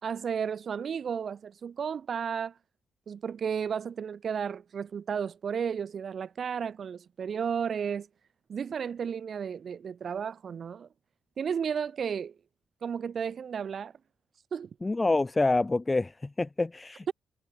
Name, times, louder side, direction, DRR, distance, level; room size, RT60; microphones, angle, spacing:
voice 1, 0.0-2.5 3.1-8.1 8.5-10.9 11.4-12.3 12.8-13.9 14.5-14.7, right 7 dB, 55° right, 4.3 m, -33 dB
voice 2, 14.8-17.1, left 2 dB, 20° left, 3.4 m, -27 dB
cardioid pair, 80°, 0 cm